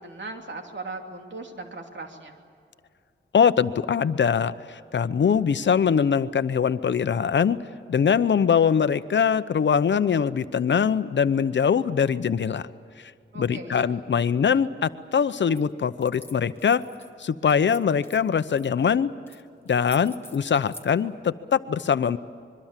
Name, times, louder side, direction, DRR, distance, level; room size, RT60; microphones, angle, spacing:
voice 1, 0.0-2.4 13.3-13.9, right 3 dB, 70° right, 3 dB, 3.0 m, -38 dB
voice 2, 3.3-7.6 7.9-12.7 13.3-16.8 17.2-19.1 19.7-22.2, left 7 dB, 70° left, 13 dB, 0.8 m, -22 dB
sound 1, 15.5-15.7 16.0-17.1 17.5-18.7 19.3-19.4 19.7-20.9, left 2 dB, 10° left, 2.1 m, -47 dB
25.5 x 23.0 x 7.5 m, 2.4 s
wide cardioid pair, 90°, 20 cm